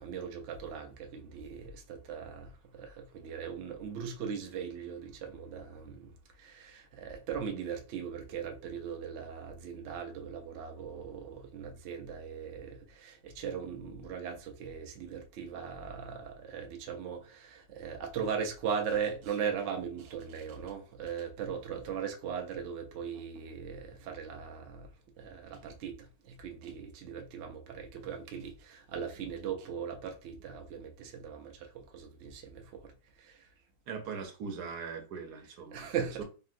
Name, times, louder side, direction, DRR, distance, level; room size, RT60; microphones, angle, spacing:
voice 1, 0.0-6.1 6.4-24.9 25.2-25.9 26.2-32.9 33.2-33.5 35.7-36.2, right 7 dB, 90° right, 0.6 m, -39 dB
voice 2, 33.9-36.2, right 5 dB, 65° right, 1.2 m, -41 dB
2.9 x 2.7 x 2.5 m
omnidirectional pair, 1.9 m